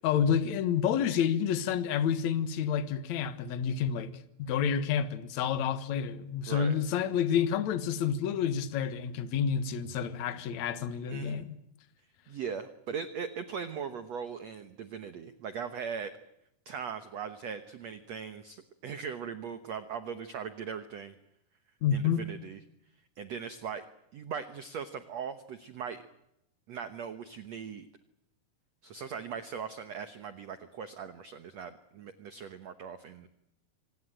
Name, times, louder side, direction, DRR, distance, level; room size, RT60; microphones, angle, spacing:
voice 1, 0.0-4.1 4.4-11.6 21.8-22.2, left 8 dB, 60° left, 2.1 m, -29 dB
voice 2, 6.5-6.8 11.1-11.5 12.3-16.1 16.6-21.2 21.9-22.6 23.2-23.8 24.1-26.1 26.7-27.9 28.8-33.3, right 6 dB, 85° right, 1.5 m, -39 dB
25.5 x 18.5 x 8.9 m
omnidirectional pair, 4.8 m